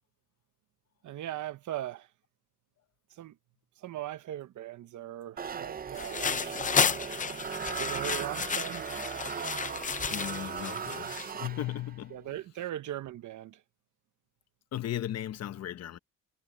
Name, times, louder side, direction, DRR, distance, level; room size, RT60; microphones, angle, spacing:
voice 1, 1.0-2.1 3.1-3.4 3.8-7.0 7.8-8.9 12.1-13.6, right 13 dB, 90° right, 1.0 m, -39 dB
sound 1, 5.4-12.0, right 7 dB, 30° right, 0.6 m, -38 dB
sound 2, 5.9-11.3, left 6 dB, 25° left, 0.6 m, -32 dB
voice 2, 10.1-12.3 14.7-16.0, left 12 dB, 60° left, 0.9 m, -36 dB
wide cardioid pair, 165°, 29 cm